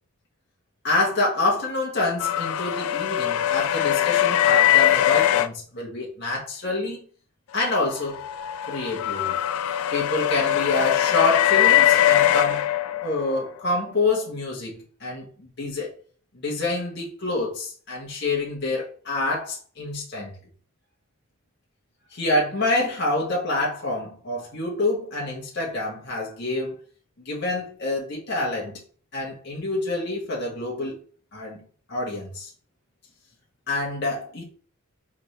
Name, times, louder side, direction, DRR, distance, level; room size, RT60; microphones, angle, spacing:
voice 1, 0.8-7.0 7.5-8.2 8.7-9.4 9.9-12.6 13.0-15.9 16.3-20.3 22.1-26.8 27.2-28.8 29.1-31.0 31.3-31.6 31.9-32.5 33.7-34.4, left 2 dB, 50° left, 1.3 m, -27 dB
sound 1, 2.2-5.5 7.9-13.4, left 12 dB, 85° left, 0.3 m, -21 dB
4.3 x 3.6 x 3.3 m
head